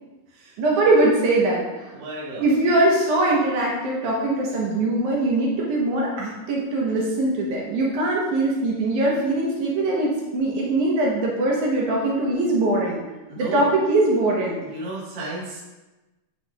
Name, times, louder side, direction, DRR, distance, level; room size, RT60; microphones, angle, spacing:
voice 1, 0.6-1.6 2.4-13.0 13.4-14.6, right 2 dB, 70° right, -3 dB, 2.3 m, -21 dB
voice 2, 1.9-2.5 13.3-13.8 14.6-15.6, right 2 dB, 45° right, -6 dB, 1.4 m, -34 dB
8.2 x 6.0 x 2.4 m, 1.1 s
omnidirectional pair, 3.9 m